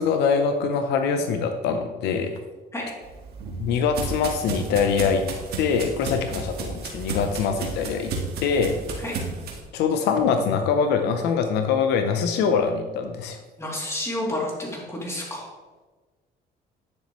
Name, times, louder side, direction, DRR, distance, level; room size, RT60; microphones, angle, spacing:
voice 1, 0.0-2.3 3.6-5.2 5.6-8.1 8.4-8.8 9.7-13.4, left 6 dB, 85° left, 7 dB, 0.7 m, -23 dB
sound 1, 3.0-9.6, right 4 dB, 70° right, 1.6 m, -33 dB
voice 2, 13.6-15.5, left 1 dB, 15° left, -3 dB, 2.8 m, -30 dB
10.0 x 6.8 x 3.1 m, 1.3 s
cardioid pair, 110°, 17 cm